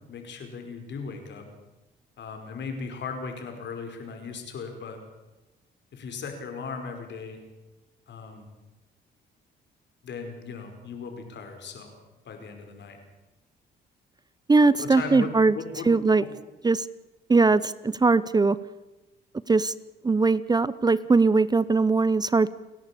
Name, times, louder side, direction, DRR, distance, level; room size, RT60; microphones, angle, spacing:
voice 1, 0.1-1.5 2.2-5.0 5.9-7.4 8.1-8.5 10.0-11.9 12.2-13.0 14.8-15.3 15.5-15.9 16.2-16.3, left 5 dB, 65° left, 5 dB, 5.0 m, -37 dB
voice 2, 14.5-15.6 15.9-16.2 16.6-16.9 17.3-18.6 19.5-19.7 20.0-22.5, right 3 dB, 20° right, 18 dB, 0.6 m, -20 dB
29.5 x 11.0 x 8.5 m, 1.1 s
cardioid pair, 90°, 20 cm